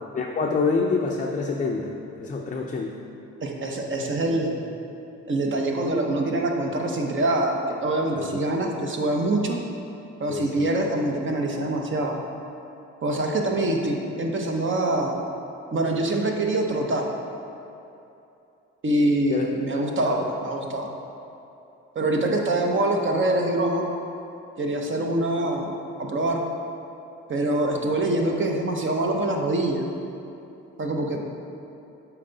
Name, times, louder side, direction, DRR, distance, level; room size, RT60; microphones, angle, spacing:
voice 1, 0.1-2.9 8.1-8.4 10.3-10.7 19.3-19.5 19.7-20.3, left 4 dB, 25° left, 0 dB, 0.5 m, -27 dB
voice 2, 3.4-4.6 5.3-9.6 10.2-12.2 13.0-15.2 15.7-17.1 18.8-20.9 21.9-23.9 24.6-25.7 26.0-26.4 27.3-29.8 30.8-31.3, right 1 dB, 40° right, 1 dB, 0.9 m, -24 dB
7.4 x 4.6 x 4.0 m, 2.8 s
cardioid pair, 90°, 30 cm